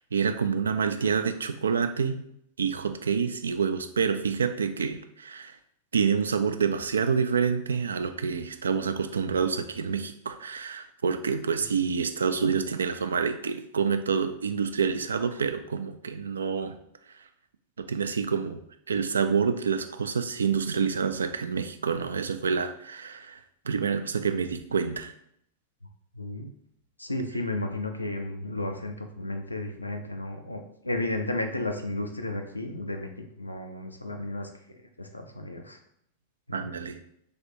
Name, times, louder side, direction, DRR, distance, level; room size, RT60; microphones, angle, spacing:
voice 1, 0.1-2.2 2.6-5.5 5.9-16.8 17.9-18.6 18.9-23.4 23.7-25.1 36.5-37.0, right 6 dB, 70° right, 8 dB, 0.3 m, -27 dB
voice 2, 26.1-26.5 27.0-33.1 33.4-35.8 36.5-36.7, left 2 dB, 85° left, 5 dB, 0.4 m, -33 dB
3.3 x 3.2 x 2.7 m, 0.70 s
figure-of-eight pair, 90°, 0 cm